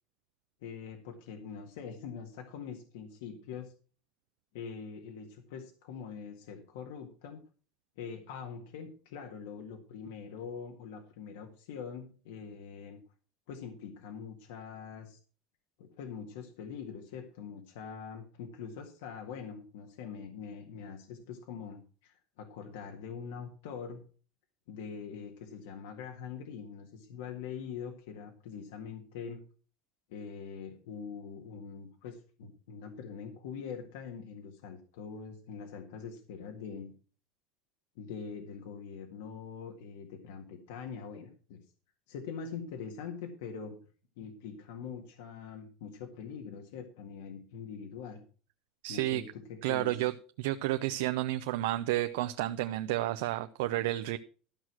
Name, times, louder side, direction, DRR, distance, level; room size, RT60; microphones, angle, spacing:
voice 1, 0.6-3.7 4.5-7.4 8.0-13.0 13.5-15.2 15.8-24.0 24.7-29.4 30.1-36.9 38.0-41.6 42.1-43.8 44.2-48.2 48.9-50.0, left 6 dB, 85° left, 1.8 m, -43 dB
voice 2, 48.8-49.2 49.6-50.1 50.4-54.2, right 15 dB, 75° right, 0.6 m, -31 dB
13.0 x 6.3 x 5.9 m
cardioid pair, 180°, 0 cm